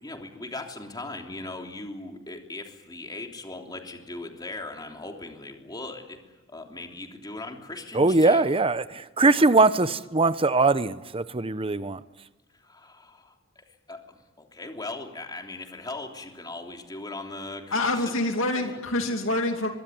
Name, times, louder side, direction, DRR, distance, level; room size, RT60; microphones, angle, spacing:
voice 1, 0.0-6.2 6.5-8.4 12.6-17.9 18.6-18.8, left 2 dB, 20° left, 3.3 m, -39 dB
voice 2, 7.9-12.0, right 3 dB, 25° right, 0.9 m, -21 dB
voice 3, 17.7-19.7, left 2 dB, 75° left, 2.7 m, -26 dB
23.5 x 23.5 x 9.4 m
head